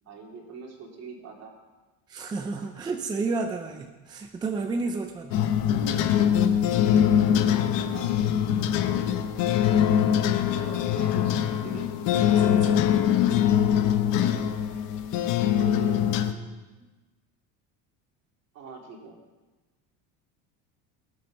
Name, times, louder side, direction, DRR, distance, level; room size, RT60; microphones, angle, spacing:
voice 1, 0.0-1.5 2.5-2.7 7.8-8.2 10.5-11.9 15.5-16.0 18.5-19.2, right 5 dB, 40° right, 0 dB, 2.6 m, -43 dB
voice 2, 2.1-5.5 12.3-12.9 16.8-16.9, right 3 dB, 10° right, 4 dB, 0.3 m, -31 dB
sound 1, 5.3-16.3, left 9 dB, 55° left, 1.0 m, -23 dB
19.0 x 7.8 x 6.0 m, 1.2 s
cardioid pair, 170°, 40 cm